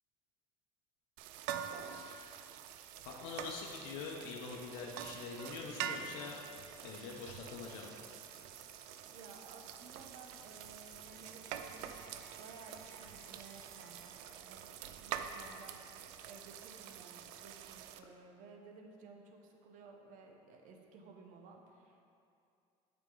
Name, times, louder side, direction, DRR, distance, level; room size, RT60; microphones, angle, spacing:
sound 1, 1.2-18.0, right 9 dB, 90° right, 0.4 m, -46 dB
voice 1, 3.0-6.4 6.8-7.9, left 4 dB, 80° left, -1 dB, 0.8 m, -44 dB
sound 2, 4.8-14.1, equal, ahead, 1.0 m, -64 dB
voice 2, 9.1-22.0, right 4 dB, 65° right, 3 dB, 0.9 m, -56 dB
8.2 x 5.0 x 3.8 m, 2.6 s
cardioid pair, 110°, 15 cm